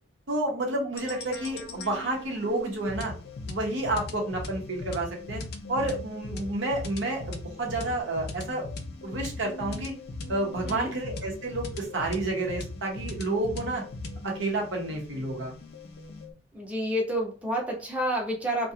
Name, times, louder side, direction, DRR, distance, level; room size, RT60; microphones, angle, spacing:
voice 1, 0.3-3.1 3.5-5.4 5.7-8.7 9.0-9.9 10.3-13.8 14.2-15.6, right 2 dB, 75° right, 0 dB, 0.8 m, -30 dB
sound 1, 1.0-16.3, left 3 dB, 55° left, 0.4 m, -39 dB
voice 2, 16.5-18.7, equal, 10° right, -2 dB, 0.6 m, -29 dB
2.4 x 2.2 x 2.7 m, 0.36 s
head